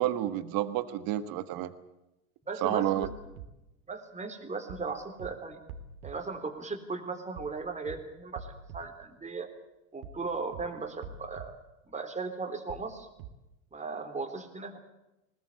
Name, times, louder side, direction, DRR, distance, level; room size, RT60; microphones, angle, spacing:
voice 1, 0.0-1.7 2.6-3.1, right 13 dB, 50° right, 11 dB, 1.5 m, -29 dB
voice 2, 2.4-3.1 3.9-5.6 6.0-9.5 9.9-11.6 11.9-13.1 13.7-14.8, right 4 dB, 15° right, 6 dB, 3.7 m, -37 dB
sound 1, 3.0-3.5 4.7-4.9 5.2-5.3 5.7-6.1 7.4-7.6 7.9-8.0 8.3-8.8 10.0-10.2 10.5-10.6 11.0-11.5 12.7-12.9 13.2-13.3, right 6 dB, 70° right, 2.9 m, -44 dB
21.0 x 19.5 x 8.5 m, 0.92 s
hypercardioid pair, 100°, 44 cm